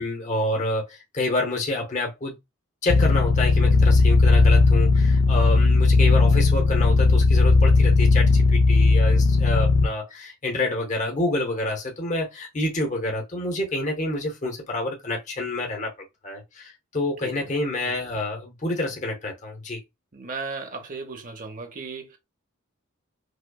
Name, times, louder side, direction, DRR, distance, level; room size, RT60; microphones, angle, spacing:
voice 1, 0.0-2.3 2.8-15.9 16.2-19.8, left 2 dB, 35° left, 0.9 m, -28 dB
sound 1, 2.9-9.9, left 3 dB, 65° left, 0.4 m, -17 dB
voice 2, 20.1-22.2, right 4 dB, 40° right, 0.8 m, -36 dB
4.9 x 2.2 x 2.2 m
head